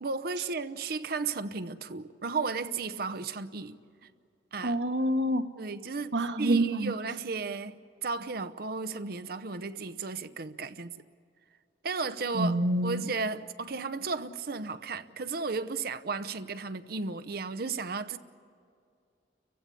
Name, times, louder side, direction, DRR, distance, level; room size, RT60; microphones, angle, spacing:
voice 1, 0.0-3.8 4.5-4.8 5.6-11.0 11.8-18.2, right 4 dB, 60° right, 0.8 m, -34 dB
voice 2, 4.6-5.5 6.1-6.9 12.3-13.1, right 1 dB, 85° right, 1.3 m, -27 dB
29.5 x 15.5 x 8.5 m
head